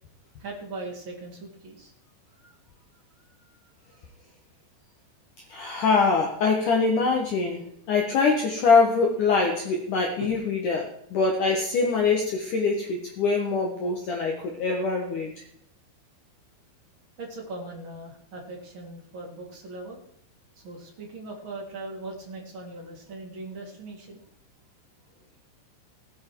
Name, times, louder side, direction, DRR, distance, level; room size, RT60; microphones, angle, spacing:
voice 1, 0.4-1.9 2.4-2.6 10.2-10.3 17.2-20.0 20.6-24.2, right 2 dB, 30° right, -2 dB, 3.4 m, -39 dB
voice 2, 5.5-15.4, left 4 dB, 60° left, 1 dB, 2.4 m, -24 dB
19.5 x 8.5 x 4.7 m, 0.73 s
omnidirectional pair, 5.2 m